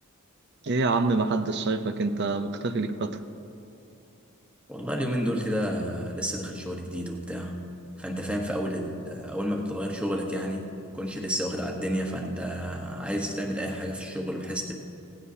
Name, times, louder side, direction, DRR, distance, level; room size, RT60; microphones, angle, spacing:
voice 1, 0.6-3.2, right 3 dB, 50° right, 10 dB, 0.6 m, -26 dB
voice 2, 4.7-7.6 8.0-14.7, equal, 5° right, 0 dB, 1.2 m, -31 dB
17.5 x 16.0 x 2.8 m, 2.7 s
head